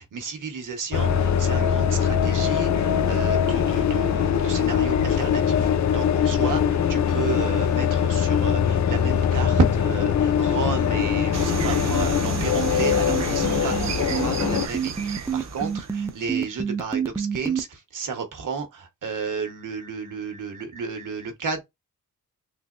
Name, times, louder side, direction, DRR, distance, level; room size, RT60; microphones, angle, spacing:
voice 1, 0.0-21.6, right 5 dB, 70° right, 1.2 m, -32 dB
sound 1, 0.9-14.7, left 8 dB, 60° left, 0.5 m, -22 dB
sound 2, 11.3-17.6, right 7 dB, 10° right, 0.4 m, -28 dB
sound 3, 11.3-16.4, right 6 dB, 55° right, 0.7 m, -32 dB
3.8 x 2.9 x 2.5 m
wide cardioid pair, 160°, 32 cm